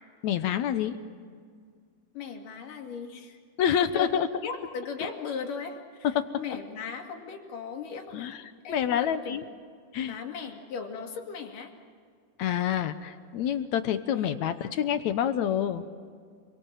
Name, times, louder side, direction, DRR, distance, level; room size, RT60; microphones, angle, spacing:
voice 1, 0.2-1.0 3.6-4.3 8.1-8.4 8.7-9.4 9.9-10.2 12.4-15.8, left 9 dB, 70° left, 10 dB, 2.1 m, -27 dB
voice 2, 2.1-3.4 3.6-4.1 4.4-8.3 8.6-9.4 10.0-11.7 14.1-14.4 14.6-14.7, left 6 dB, 85° left, 3 dB, 4.0 m, -38 dB
29.0 x 23.0 x 7.5 m, 2.1 s
omnidirectional pair, 3.7 m